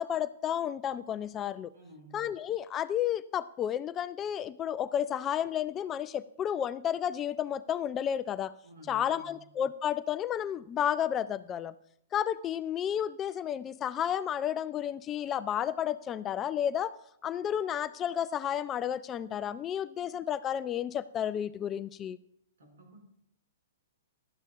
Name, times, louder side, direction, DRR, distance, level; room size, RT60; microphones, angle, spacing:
voice 1, 0.0-1.7 2.1-8.5 8.9-11.7 12.1-16.9 17.2-22.2, left 9 dB, 20° left, 16 dB, 0.3 m, -32 dB
voice 2, 1.7-2.3 8.6-9.5 22.6-23.0, right 1 dB, 60° right, 1 dB, 5.6 m, -53 dB
17.0 x 12.0 x 2.4 m, 0.73 s
figure-of-eight pair, 110°, 0 cm